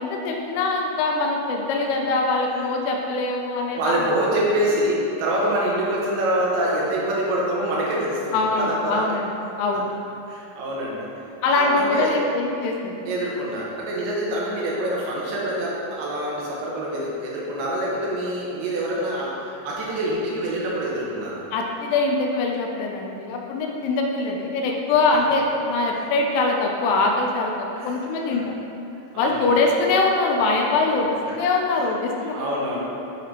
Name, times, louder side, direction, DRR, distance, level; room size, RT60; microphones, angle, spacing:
voice 1, 0.0-4.0 8.3-9.3 9.6-9.9 11.4-13.0 21.5-28.6 29.2-32.4, left 3 dB, 90° left, 0 dB, 2.7 m, -23 dB
voice 2, 3.6-9.0 10.3-11.1 11.6-12.2 13.1-21.4 27.8-27.9 29.1-29.5 32.3-32.8, right 1 dB, 70° right, -4 dB, 2.5 m, -25 dB
8.7 x 2.9 x 4.9 m, 2.8 s
omnidirectional pair, 4.5 m